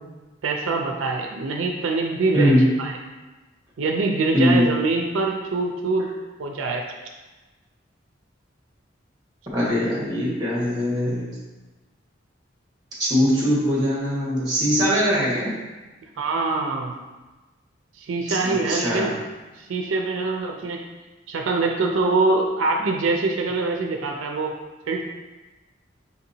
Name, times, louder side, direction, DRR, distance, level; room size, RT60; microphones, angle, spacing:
voice 1, 0.4-2.5 2.8-2.9 3.8-6.1 6.4-6.9 16.2-16.9 18.0-19.2 19.6-20.8 21.3-24.6 24.9-25.0, right 3 dB, 85° right, 2 dB, 0.4 m, -24 dB
voice 2, 2.3-2.7 4.3-4.7 9.5-11.3 13.0-15.5 18.3-19.1, equal, 20° right, -6 dB, 1.3 m, -21 dB
5.6 x 2.8 x 2.7 m, 1.2 s
head